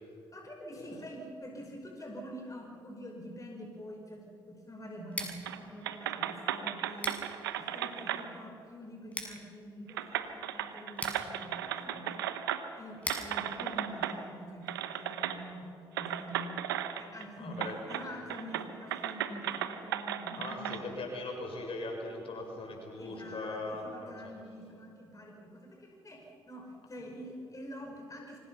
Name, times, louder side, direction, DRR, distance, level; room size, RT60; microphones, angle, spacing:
voice 1, 0.3-12.2 12.8-20.8 23.0-28.4, equal, 30° left, 1 dB, 5.5 m, -46 dB
Scissors, 5.0-14.8, left 1 dB, 10° left, 7.0 m, -46 dB
sound 1, 5.2-5.6 5.8-8.2 9.4-9.5 9.9-12.8 13.1-14.2 14.7-15.4 16.0-17.2 17.6-18.1 18.3-20.8, right 11 dB, 90° right, 1.0 m, -35 dB
voice 2, 17.4-17.8 20.4-24.3, left 2 dB, 55° left, 1 dB, 6.8 m, -40 dB
25.5 x 25.0 x 5.7 m, 2.6 s
hypercardioid pair, 45°, 12 cm